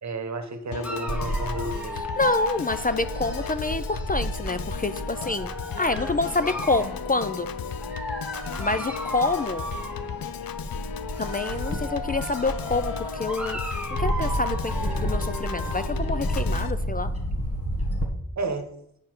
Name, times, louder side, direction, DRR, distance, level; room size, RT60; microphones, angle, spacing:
voice 1, 0.0-2.0 18.4-18.7, right 3 dB, 55° right, 7 dB, 1.1 m, -31 dB
Piano / Organ, 0.7-16.7, left 7 dB, 90° left, 0.5 m, -36 dB
Dog, 0.8-4.2 5.1-7.0 7.8-10.4 11.1-16.0, equal, 5° right, 1.2 m, -37 dB
Bird / Wind, 1.1-18.1, equal, 45° left, 1.4 m, -32 dB
voice 2, 2.2-5.5 5.8-7.5 8.6-9.7 11.2-17.1, left 3 dB, 25° left, 11 dB, 0.4 m, -27 dB
8.4 x 4.6 x 6.0 m, 0.74 s
wide cardioid pair, 100°, 34 cm